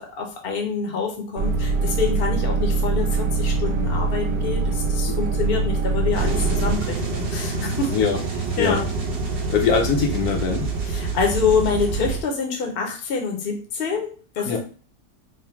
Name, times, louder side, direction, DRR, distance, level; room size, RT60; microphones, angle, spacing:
voice 1, 0.0-7.9 8.6-8.9 10.8-14.6, left 5 dB, 45° left, 2 dB, 0.9 m, -26 dB
sound 1, 1.4-6.8, right 3 dB, 75° right, 1.0 m, -23 dB
sound 2, 6.1-12.2, right 4 dB, 45° right, 0.9 m, -27 dB
voice 2, 9.5-10.7 14.4-14.6, left 6 dB, 75° left, 2 dB, 1.3 m, -22 dB
3.4 x 2.2 x 4.4 m, 0.40 s
omnidirectional pair, 1.6 m